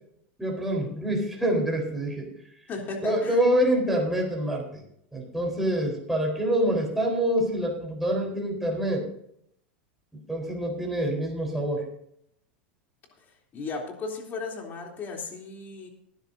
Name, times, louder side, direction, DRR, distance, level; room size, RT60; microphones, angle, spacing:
voice 1, 0.4-2.3 3.0-4.8 5.1-9.0 10.1-11.9, right 1 dB, 5° right, -1 dB, 4.2 m, -26 dB
voice 2, 2.7-3.4 13.2-13.3 13.5-15.9, left 4 dB, 35° left, 1 dB, 3.3 m, -35 dB
19.5 x 10.5 x 2.7 m, 0.71 s
supercardioid pair, 125°, 6 cm